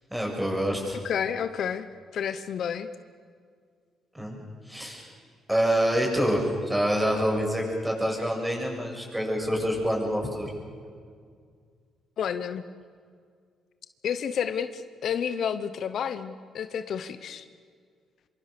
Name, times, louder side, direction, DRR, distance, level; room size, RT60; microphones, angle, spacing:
voice 1, 0.1-1.0 4.1-5.1 5.5-10.5, equal, 5° right, 0 dB, 7.6 m, -27 dB
voice 2, 1.0-1.9 2.1-2.9 6.2-6.3 12.2-12.7 14.0-17.5, left 8 dB, 65° left, 11 dB, 1.0 m, -30 dB
25.5 x 24.5 x 6.9 m, 2.1 s
cardioid pair, 90°, 0 cm